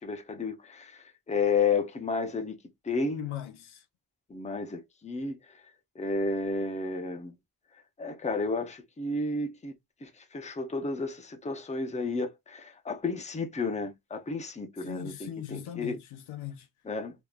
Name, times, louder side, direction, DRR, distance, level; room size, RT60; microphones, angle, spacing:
voice 1, 0.0-2.6 2.8-3.2 4.3-5.4 6.0-7.3 8.0-9.7 10.0-16.0 16.8-17.1, left 4 dB, 15° left, 0.7 m, -32 dB
voice 2, 3.2-3.8 14.8-16.7, left 11 dB, 85° left, 0.9 m, -39 dB
3.5 x 3.0 x 2.4 m
wide cardioid pair, 145°, 48 cm